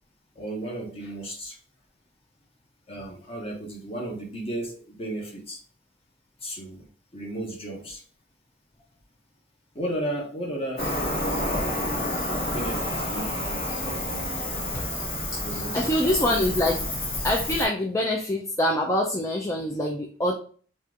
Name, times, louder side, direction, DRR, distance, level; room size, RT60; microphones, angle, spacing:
voice 1, 0.3-1.6 2.9-5.6 6.4-6.9 7.1-8.0 9.7-10.9 12.4-13.7 15.4-16.2, right 1 dB, 30° left, 1.1 m, -34 dB
Cricket, 10.8-17.6, left 1 dB, 55° left, 1.9 m, -29 dB
voice 2, 15.5-16.9 17.2-20.4, left 1 dB, 15° left, 0.5 m, -25 dB
4.2 x 2.5 x 3.6 m
head